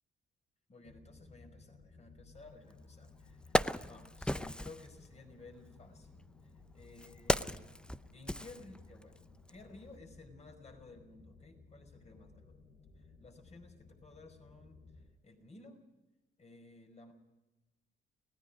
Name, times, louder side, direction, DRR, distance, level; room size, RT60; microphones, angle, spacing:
voice 1, 0.7-7.6 8.1-9.2 9.5-12.6 13.0-15.9 16.4-17.1, left 3 dB, 35° left, 6 dB, 5.2 m, -56 dB
sound 1, 0.8-15.1, left 3 dB, 75° left, 6.4 m, -59 dB
Wood, 2.7-2.8 3.2-4.9 5.8-9.2 9.5-9.6, left 1 dB, 5° left, 0.6 m, -35 dB
29.0 x 18.5 x 5.1 m, 1.0 s
cardioid pair, 90°, 20 cm